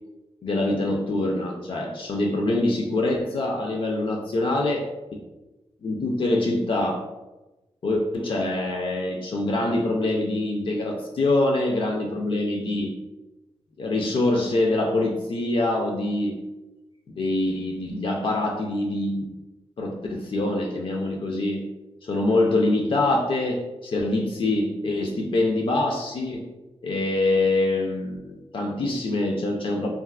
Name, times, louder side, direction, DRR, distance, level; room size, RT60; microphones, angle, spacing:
voice 1, 0.4-4.9 5.1-5.2 5.8-7.0 7.8-12.9 13.8-16.4 17.1-19.3 19.8-21.6 22.0-26.5 26.8-29.9, left 2 dB, 55° left, 0 dB, 0.4 m, -24 dB
3.4 x 2.4 x 2.2 m, 1.1 s
wide cardioid pair, 105°, 11 cm